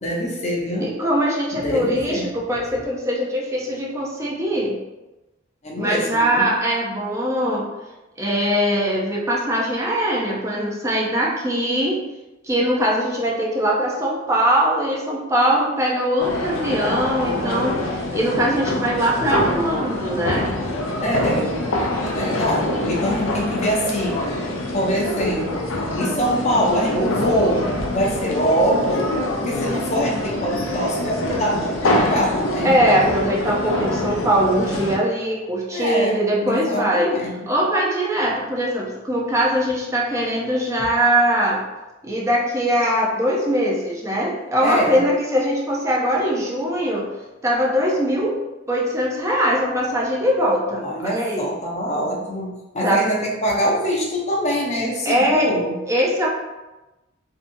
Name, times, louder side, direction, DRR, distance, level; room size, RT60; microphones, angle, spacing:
voice 1, 0.0-0.9 1.5-2.3 5.6-6.5 21.0-21.5 22.0-24.2 24.7-25.7 25.9-29.1 29.4-32.8 35.7-37.3 44.6-45.0 50.8-52.5 52.7-55.8, equal, 35° left, -3 dB, 0.6 m, -23 dB
voice 2, 0.8-4.8 5.8-7.7 8.2-12.0 12.4-20.5 32.6-37.1 37.5-41.6 42.0-47.1 47.4-48.4 48.7-51.5 52.8-53.0 55.1-55.5 55.9-56.4, equal, 15° right, -3 dB, 0.5 m, -21 dB
sound 1, 16.2-35.0, left 1 dB, 85° left, 0.4 m, -25 dB
2.7 x 2.3 x 2.6 m, 1.1 s
head